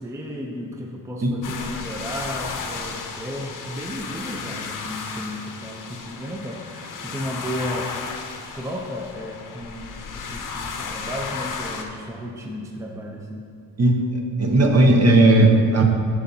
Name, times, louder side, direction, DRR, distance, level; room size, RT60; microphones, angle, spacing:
voice 1, 0.0-8.0 8.5-13.5, equal, 10° right, 1 dB, 0.6 m, -34 dB
sound 1, 1.4-11.9, left 5 dB, 50° left, 0.8 m, -34 dB
voice 2, 13.8-15.8, right 2 dB, 40° right, 3 dB, 0.9 m, -16 dB
8.2 x 7.1 x 2.8 m, 2.4 s
cardioid pair, 90°, 40 cm